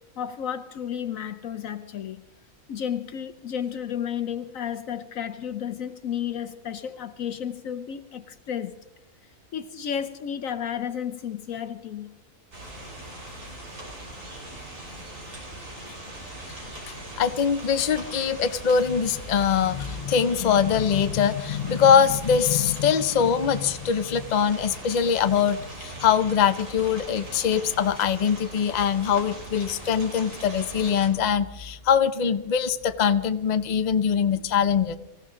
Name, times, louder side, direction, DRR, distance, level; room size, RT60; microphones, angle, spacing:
voice 1, 0.2-2.2 2.7-8.7 9.5-12.1, left 9 dB, 65° left, 1.1 m, -32 dB
sound 1, 12.5-31.1, right 1 dB, 85° right, 4.6 m, -40 dB
voice 2, 16.9-35.0, left 7 dB, 45° left, 0.6 m, -23 dB
25.0 x 15.5 x 3.8 m
omnidirectional pair, 1.6 m